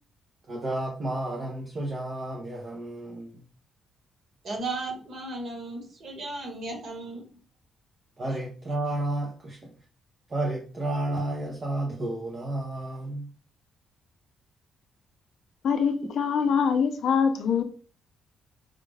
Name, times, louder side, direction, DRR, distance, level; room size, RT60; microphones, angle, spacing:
voice 1, 0.5-3.4 8.2-9.7 10.3-13.3, right 1 dB, 25° right, 0.6 m, -31 dB
voice 2, 4.4-7.2, right 2 dB, 45° right, 1.4 m, -35 dB
voice 3, 15.6-17.6, left 6 dB, 55° left, 0.5 m, -24 dB
5.0 x 2.3 x 3.3 m
cardioid pair, 175°, 0 cm